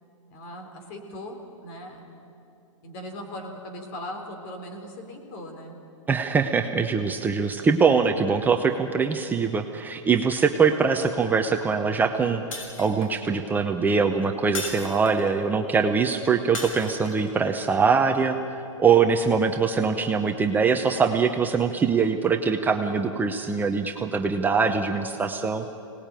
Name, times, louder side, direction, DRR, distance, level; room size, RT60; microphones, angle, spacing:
voice 1, 0.3-2.0 2.8-5.8, left 1 dB, 45° left, 3 dB, 4.1 m, -39 dB
voice 2, 6.1-18.4 18.8-25.6, right 5 dB, 10° right, 4 dB, 0.7 m, -23 dB
Shatter, 12.5-13.2 14.5-15.4 16.5-17.3, left 2 dB, 80° left, 5.8 m, -36 dB
24.5 x 19.0 x 9.1 m, 2.9 s
hypercardioid pair, 145°, 17 cm